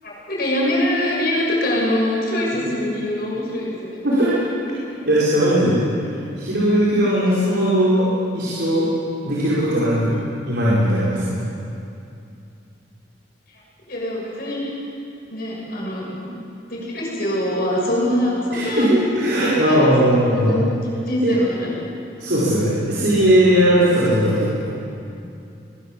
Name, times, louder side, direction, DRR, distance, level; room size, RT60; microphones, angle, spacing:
voice 1, 0.0-4.0 4.7-4.8 7.2-7.3 13.9-14.7 15.3-16.3 16.7-18.9 19.3-19.8 20.4-20.6 21.1-21.8, left 1 dB, 55° left, -4 dB, 7.9 m, -23 dB
voice 2, 4.0-4.4 5.1-5.8 6.4-8.1 8.3-8.9 9.2-10.2 10.5-11.4 18.5-20.5 21.2-21.3 22.2-24.7, equal, 60° right, -9 dB, 5.4 m, -18 dB
23.0 x 21.0 x 7.8 m, 2.6 s
head